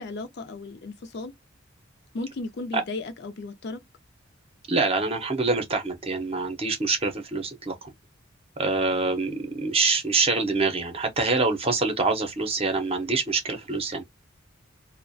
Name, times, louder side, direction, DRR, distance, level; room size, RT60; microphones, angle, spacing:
voice 1, 0.0-1.3 2.1-3.8, left 3 dB, 55° left, 0.5 m, -35 dB
voice 2, 4.7-7.7 8.6-14.0, right 3 dB, 30° right, 0.6 m, -25 dB
2.3 x 2.1 x 2.5 m
head